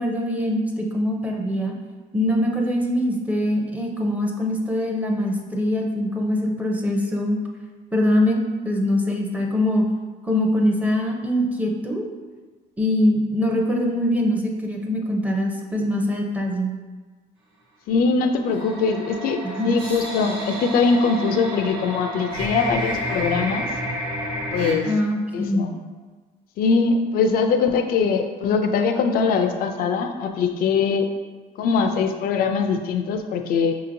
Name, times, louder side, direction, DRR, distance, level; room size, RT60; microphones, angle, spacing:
voice 1, 0.0-1.7 2.1-7.4 7.9-8.4 8.6-9.8 10.2-12.0 12.8-16.7 19.4-19.7 24.8-25.6, left 1 dB, 10° right, 0 dB, 0.5 m, -23 dB
voice 2, 17.9-23.7 24.5-24.9 25.3-25.8 26.6-31.1 31.6-33.7, left 5 dB, 60° left, 6 dB, 0.4 m, -22 dB
sound 1, 18.5-24.7, equal, 80° right, 1.3 m, -30 dB
5.6 x 2.8 x 2.6 m, 1.4 s
cardioid pair, 110°, 17 cm